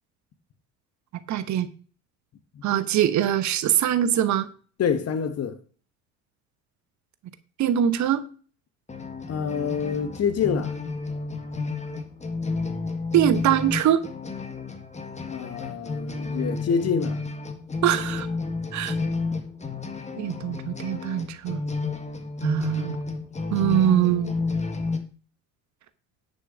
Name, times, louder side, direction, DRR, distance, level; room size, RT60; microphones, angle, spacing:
voice 1, 1.1-1.7 2.6-4.5 7.6-8.2 13.1-14.0 17.8-18.3 18.7-18.9 20.2-21.6 22.4-23.0 23.5-24.4, right 11 dB, 45° right, 1.1 m, -23 dB
voice 2, 4.8-5.6 9.3-10.8 15.3-17.2 19.9-20.0, left 6 dB, 35° left, 1.4 m, -27 dB
sound 1, 8.9-25.0, left 3 dB, 15° left, 1.6 m, -31 dB
10.0 x 5.6 x 6.2 m
figure-of-eight pair, 65°, 41 cm